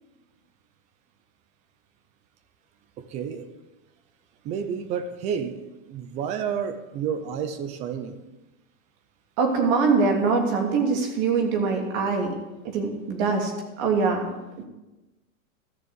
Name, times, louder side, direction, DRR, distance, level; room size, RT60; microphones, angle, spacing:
voice 1, 3.0-3.5 4.4-5.6 5.9-8.2, right 7 dB, 15° right, 10 dB, 0.5 m, -30 dB
voice 2, 9.4-12.3 12.7-13.5 13.8-14.3, right 4 dB, 35° right, 2 dB, 3.0 m, -23 dB
13.5 x 6.9 x 8.2 m, 1.1 s
hypercardioid pair, 155°, 42 cm